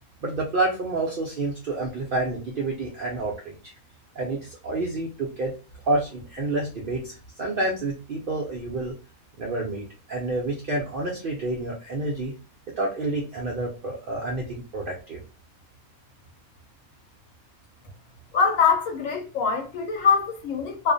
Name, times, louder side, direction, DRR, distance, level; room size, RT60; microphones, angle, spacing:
voice 1, 0.2-3.7 4.2-5.5 5.8-8.9 9.4-12.3 12.8-15.2, right 2 dB, 65° right, 0.5 m, -29 dB
voice 2, 18.3-20.9, left 6 dB, 75° left, 0.9 m, -23 dB
2.4 x 2.1 x 2.5 m
omnidirectional pair, 1.5 m